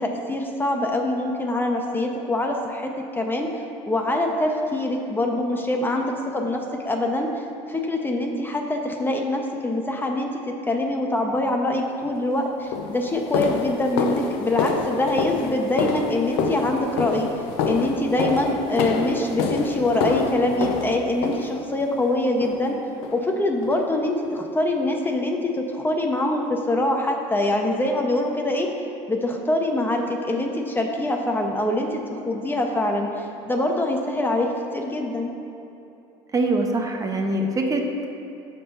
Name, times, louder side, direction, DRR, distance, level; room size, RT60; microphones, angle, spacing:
voice 1, 0.0-3.5 3.9-7.3 7.7-17.3 17.6-22.8 23.1-28.7 29.1-35.3, left 1 dB, 15° left, 2 dB, 0.5 m, -24 dB
sound 1, 12.0-12.2 12.7-21.9 22.4-22.8 23.0-23.2 23.6-23.8 24.2-24.3 24.8-24.9, left 5 dB, 85° left, 0.5 m, -27 dB
voice 2, 36.3-38.0, right 2 dB, 25° right, 2 dB, 0.6 m, -23 dB
5.6 x 3.7 x 5.4 m, 2.8 s
supercardioid pair, 95°, 13 cm